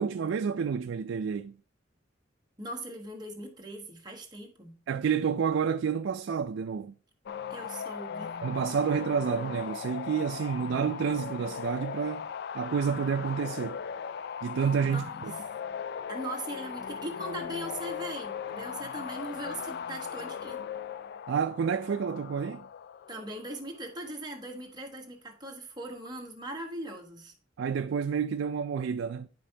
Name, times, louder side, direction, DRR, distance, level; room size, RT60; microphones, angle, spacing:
voice 1, 0.0-1.5 4.9-6.9 8.4-12.3 12.5-13.8 14.4-15.3 21.3-22.6 27.6-29.3, right 6 dB, 70° right, 0.3 m, -29 dB
voice 2, 2.6-4.7 7.5-8.3 14.9-15.2 16.1-20.6 23.1-27.3, right 1 dB, 20° right, 1.3 m, -40 dB
sound 1, 7.3-24.0, left 7 dB, 55° left, 0.3 m, -38 dB
9.9 x 5.2 x 2.8 m
head